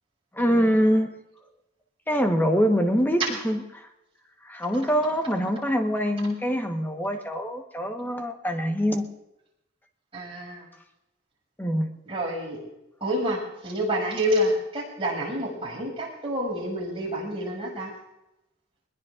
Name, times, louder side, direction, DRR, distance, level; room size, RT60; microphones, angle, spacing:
voice 1, 0.3-1.1 2.1-3.9 4.4-9.1 11.6-11.9, equal, 10° left, 4 dB, 1.2 m, -24 dB
voice 2, 10.1-10.7 12.1-12.6 13.0-17.9, equal, 30° right, -3 dB, 6.6 m, -28 dB
21.5 x 20.5 x 2.5 m, 0.92 s
head